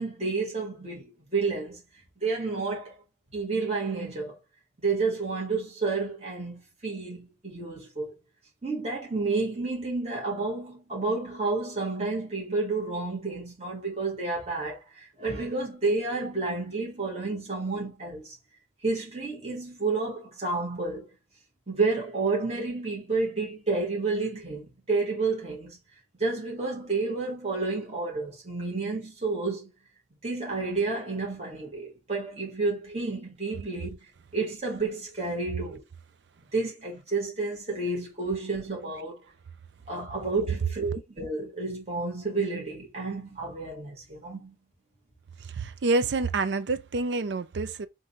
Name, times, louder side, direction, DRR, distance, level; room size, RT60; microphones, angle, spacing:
voice 1, 0.0-1.8 2.2-3.0 3.3-4.4 4.8-8.2 8.6-18.4 18.8-21.1 21.7-25.8 26.1-29.7 30.2-34.0 34.3-35.8 36.5-39.2 39.9-44.5, right 3 dB, 35° right, 1.7 m, -30 dB
voice 2, 45.6-47.9, right 3 dB, 75° right, 0.5 m, -27 dB
3.7 x 2.7 x 4.2 m
head